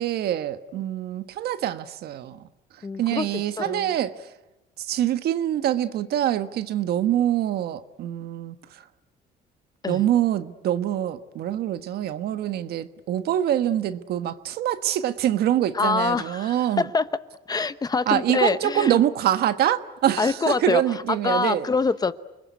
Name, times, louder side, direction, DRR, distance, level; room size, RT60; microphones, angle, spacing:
voice 1, 0.0-2.4 3.0-4.3 4.8-8.8 9.9-16.9 18.1-21.7, right 11 dB, 70° right, 1.4 m, -25 dB
voice 2, 2.8-3.3 3.6-3.9 9.8-10.0 15.7-17.0 17.5-19.0 20.2-20.8 21.2-22.1, left 4 dB, 25° left, 1.0 m, -25 dB
28.5 x 21.0 x 9.5 m
cardioid pair, 110°, 17 cm